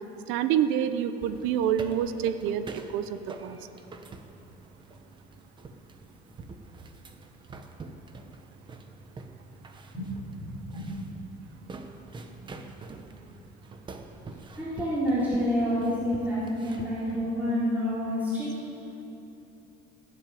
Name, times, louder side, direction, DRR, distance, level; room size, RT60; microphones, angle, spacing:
voice 1, 0.3-3.6, right 9 dB, 80° right, 11 dB, 0.8 m, -27 dB
sound 1, 1.2-17.2, right 3 dB, 25° right, 1.0 m, -46 dB
voice 2, 9.9-11.0 12.3-12.4 14.5-18.5, equal, 10° right, -12 dB, 4.5 m, -29 dB
18.5 x 7.9 x 9.3 m, 2.8 s
cardioid pair, 155°, 20 cm